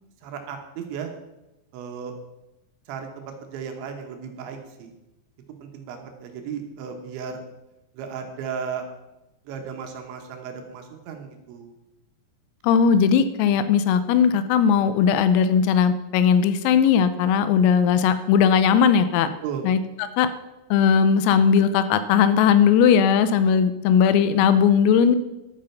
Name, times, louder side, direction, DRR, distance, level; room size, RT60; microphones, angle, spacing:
voice 1, 0.2-1.1 1.7-2.1 2.9-4.9 5.6-7.4 7.9-8.8 9.4-11.7 19.4-19.7, right 7 dB, 70° right, 4 dB, 3.3 m, -35 dB
voice 2, 12.6-19.3 19.6-19.8 20.2-20.3 20.7-25.2, left 7 dB, 85° left, 12 dB, 3.4 m, -18 dB
12.0 x 8.7 x 5.8 m, 0.96 s
omnidirectional pair, 6.0 m